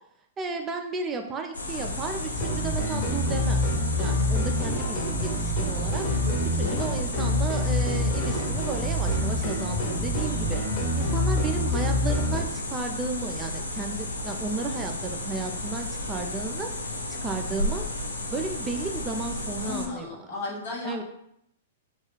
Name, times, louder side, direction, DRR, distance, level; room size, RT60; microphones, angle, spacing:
voice 1, 0.4-3.7 4.0-6.1 6.6-10.6 10.9-16.7 17.2-17.8 18.3-20.3 20.8-21.0, right 4 dB, 20° right, 4 dB, 0.3 m, -33 dB
sound 1, 1.5-19.9, left 2 dB, 85° left, 0.4 m, -33 dB
sound 2, 2.3-12.4, left 1 dB, 35° left, 0.9 m, -27 dB
voice 2, 6.2-6.9 7.2-7.3 19.6-21.0, left 3 dB, 65° left, -3 dB, 0.9 m, -35 dB
2.3 x 2.3 x 3.0 m, 0.75 s
figure-of-eight pair, 110°, 0 cm